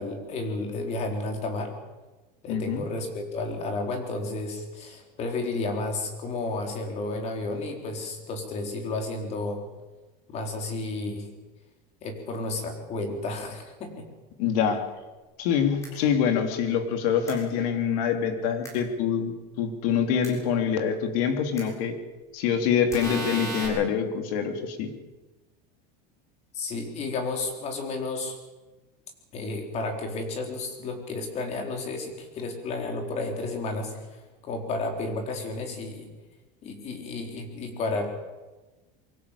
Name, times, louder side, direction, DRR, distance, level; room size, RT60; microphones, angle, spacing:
voice 1, 0.0-1.7 2.4-9.6 10.3-11.3 12.0-14.1 26.5-28.4 29.3-36.1 36.6-38.1, left 2 dB, 35° left, 3 dB, 4.4 m, -32 dB
voice 2, 2.5-2.9 14.4-14.8 15.4-22.0 22.3-24.9, left 7 dB, 65° left, 6 dB, 3.2 m, -25 dB
sound 1, 15.8-15.9 17.3-17.4 18.6-18.7 20.2-20.3 21.6-21.7 22.9-23.7, equal, 15° left, 7.3 m, -33 dB
24.0 x 17.0 x 8.6 m, 1.2 s
cardioid pair, 165°, 20 cm